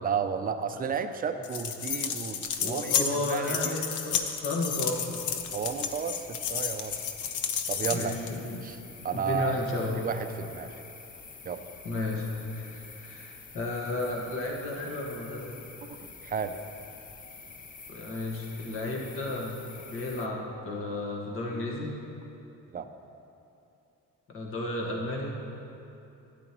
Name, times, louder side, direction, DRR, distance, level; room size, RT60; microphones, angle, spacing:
voice 1, 0.0-3.8 5.5-7.0 7.7-8.1 8.6-9.6 10.0-10.8 11.4-11.7 15.8-16.6 22.7-22.9, right 7 dB, 30° right, 8 dB, 0.5 m, -33 dB
sound 1, 1.4-8.4, left 7 dB, 70° left, 0.8 m, -32 dB
voice 2, 2.6-5.2 7.9-8.6 9.1-10.0 11.8-15.6 17.9-19.6 19.9-21.9 24.3-25.3, left 2 dB, 45° left, -2 dB, 1.6 m, -33 dB
sound 2, 4.8-20.3, left 4 dB, 25° left, 0.6 m, -48 dB
12.5 x 10.0 x 3.0 m, 2.8 s
cardioid pair, 120°, 31 cm